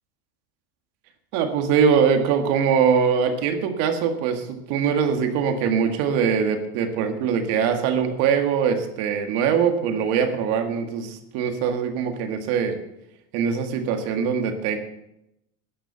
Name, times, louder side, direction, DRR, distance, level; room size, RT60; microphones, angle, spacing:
voice 1, 1.3-12.8 13.3-14.8, right 7 dB, 50° right, 6 dB, 2.0 m, -22 dB
13.5 x 10.0 x 7.0 m, 0.85 s
supercardioid pair, 155°, 48 cm